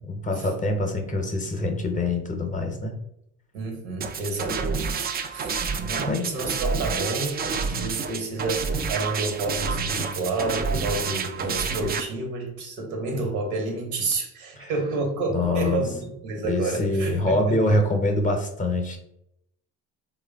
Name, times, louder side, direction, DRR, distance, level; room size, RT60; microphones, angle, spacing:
voice 1, 0.0-2.9 5.4-5.6 6.1-6.2 14.6-14.7 15.3-15.9 16.4-19.0, left 2 dB, 20° left, 3 dB, 0.7 m, -25 dB
voice 2, 3.5-5.6 5.9-17.7, right 3 dB, 75° right, 3 dB, 0.9 m, -30 dB
sound 1, 4.0-12.0, right 5 dB, 25° right, 0.3 m, -28 dB
3.2 x 2.2 x 3.4 m, 0.77 s
hypercardioid pair, 65°, 37 cm